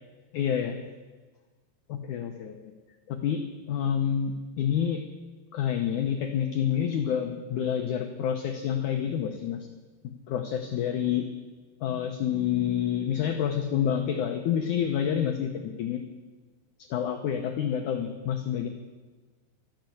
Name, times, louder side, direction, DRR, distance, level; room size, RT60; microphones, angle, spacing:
voice 1, 0.3-0.8 1.9-2.6 3.1-5.0 5.5-9.7 10.3-11.3 11.8-16.0 16.8-18.7, left 9 dB, 85° left, 5 dB, 1.7 m, -28 dB
13.0 x 12.0 x 7.8 m, 1.3 s
omnidirectional pair, 4.7 m